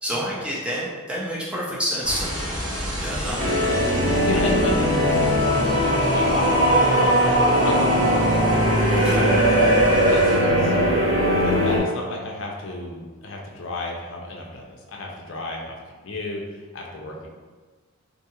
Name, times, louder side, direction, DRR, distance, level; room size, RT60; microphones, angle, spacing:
voice 1, 0.0-2.4 3.0-3.4 8.9-9.2, equal, 5° right, -6 dB, 0.4 m, -28 dB
sound 1, 2.0-10.4, equal, 75° right, 1.2 m, -32 dB
voice 2, 3.2-6.7 7.6-8.3 9.0-9.6 10.1-15.8 16.0-17.3, left 2 dB, 60° left, -1 dB, 0.5 m, -32 dB
sound 2, 3.4-11.8, equal, 45° right, 1.3 m, -19 dB
2.6 x 2.3 x 2.8 m, 1.3 s
head